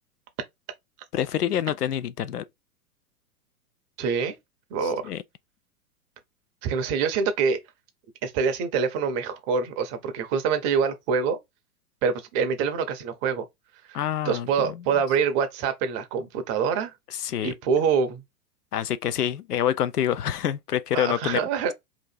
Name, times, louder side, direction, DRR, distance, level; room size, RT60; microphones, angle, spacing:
voice 1, 1.1-2.4 4.8-5.2 13.9-14.8 17.1-17.5 18.7-21.4, left 10 dB, 80° left, 0.6 m, -27 dB
voice 2, 4.0-4.4 4.7-5.1 6.6-7.6 8.2-11.4 12.0-13.5 13.9-14.0 14.2-16.9 17.4-18.2 20.9-21.7, right 6 dB, 25° right, 0.6 m, -25 dB
2.9 x 2.5 x 4.1 m
figure-of-eight pair, 105°, 46 cm